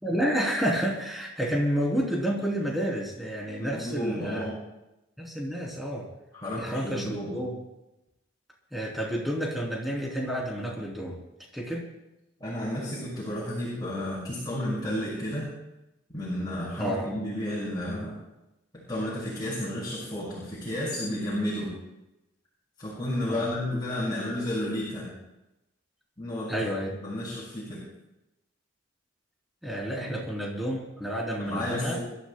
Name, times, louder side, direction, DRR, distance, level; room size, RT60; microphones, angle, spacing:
voice 1, 0.0-4.5 5.2-6.1 6.6-7.5 8.7-11.2 11.5-11.9 16.8-17.1 23.3-23.4 26.5-26.9 29.6-32.0, equal, ahead, -3 dB, 3.4 m, -30 dB
voice 2, 3.6-4.5 6.3-7.3 12.4-15.5 16.1-18.1 18.9-21.7 22.8-25.1 26.2-26.7 27.0-27.8 29.9-30.2 31.4-32.0, left 1 dB, 20° left, -7 dB, 6.2 m, -32 dB
29.0 x 14.0 x 2.3 m, 0.94 s
head